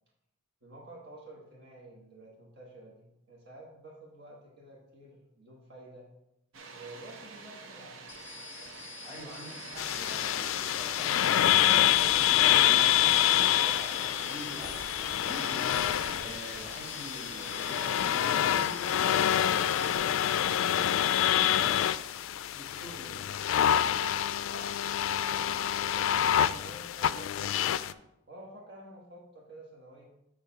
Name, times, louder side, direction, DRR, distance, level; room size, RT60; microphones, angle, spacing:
voice 1, 0.6-6.1 6.7-8.0 24.4-27.6 28.3-30.1, right 1 dB, 55° right, -2 dB, 1.4 m, -50 dB
Water, 6.5-18.2, right 4 dB, 80° right, 0.8 m, -47 dB
sound 1, 8.1-20.0, left 5 dB, 15° left, 0.5 m, -47 dB
voice 2, 9.0-15.6 16.2-21.5 22.5-23.4, right 1 dB, 15° right, -5 dB, 2.7 m, -46 dB
sound 2, 9.8-27.9, left 11 dB, 80° left, 0.3 m, -27 dB
8.1 x 3.4 x 5.7 m, 0.85 s
head